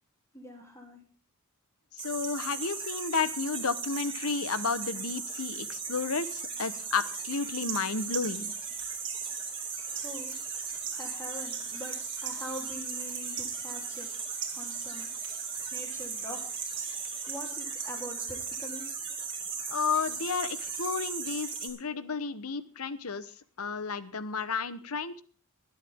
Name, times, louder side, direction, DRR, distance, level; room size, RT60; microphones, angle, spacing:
voice 1, 0.3-1.0 9.9-10.4 10.9-12.0 12.2-14.1 14.5-15.1 15.7-16.6 17.3-18.8, equal, 15° left, 2 dB, 3.3 m, -43 dB
voice 2, 2.0-8.5 19.7-23.3 23.6-25.2, left 5 dB, 80° left, 15 dB, 1.1 m, -32 dB
sound 1, 2.0-21.7, right 5 dB, 25° right, 4.2 m, -37 dB
sound 2, 7.5-17.5, right 9 dB, 55° right, 2.7 m, -45 dB
24.0 x 9.2 x 3.6 m, 0.41 s
head